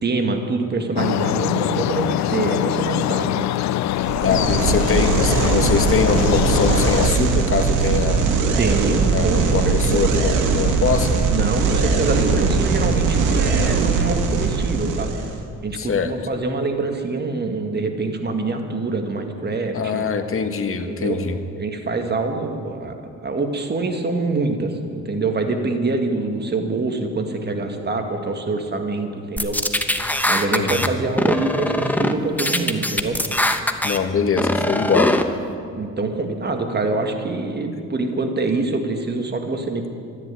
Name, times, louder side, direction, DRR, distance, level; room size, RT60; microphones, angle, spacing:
voice 1, 0.0-3.5 4.3-4.8 8.6-10.1 11.3-15.2 15.6-20.1 20.8-21.3 21.6-29.6 30.3-33.2 35.7-39.9, right 3 dB, 35° right, 4 dB, 2.0 m, -25 dB
sound 1, 1.0-7.1, left 14 dB, 65° left, 0.4 m, -23 dB
sound 2, 4.0-15.4, right 4 dB, 85° right, 2.0 m, -20 dB
voice 2, 4.2-8.4 9.1-11.2 15.7-16.1 19.7-21.4 30.5-30.9 33.8-35.2, left 5 dB, 45° left, 7 dB, 1.5 m, -23 dB
sound 3, 29.4-30.9 31.2-32.1 32.4-34.0 34.4-35.2, left 1 dB, 5° left, 1.0 m, -21 dB
13.0 x 10.5 x 9.3 m, 2.3 s
cardioid pair, 90°, 30 cm